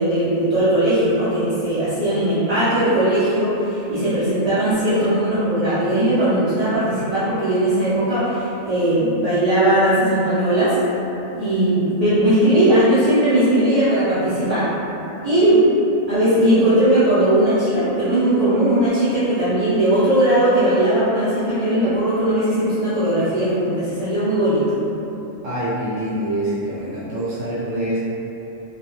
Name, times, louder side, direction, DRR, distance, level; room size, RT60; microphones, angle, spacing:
voice 1, 0.0-10.8 11.3-14.7 15.2-15.7 16.1-24.8, right 1 dB, 45° right, -14 dB, 0.5 m, -18 dB
voice 2, 25.4-28.0, right 1 dB, 75° right, -10 dB, 1.1 m, -25 dB
2.3 x 2.2 x 3.0 m, 3.0 s
omnidirectional pair, 1.4 m